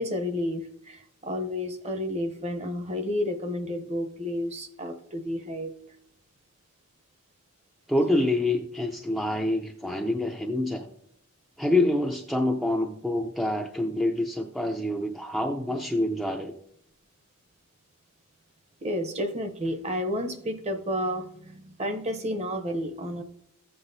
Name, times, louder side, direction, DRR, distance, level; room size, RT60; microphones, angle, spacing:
voice 1, 0.0-5.7 18.8-23.2, left 1 dB, 30° right, 7 dB, 0.7 m, -31 dB
voice 2, 7.9-10.9 11.6-16.5, left 1 dB, ahead, 1 dB, 0.4 m, -26 dB
14.5 x 7.8 x 2.7 m, 0.73 s
head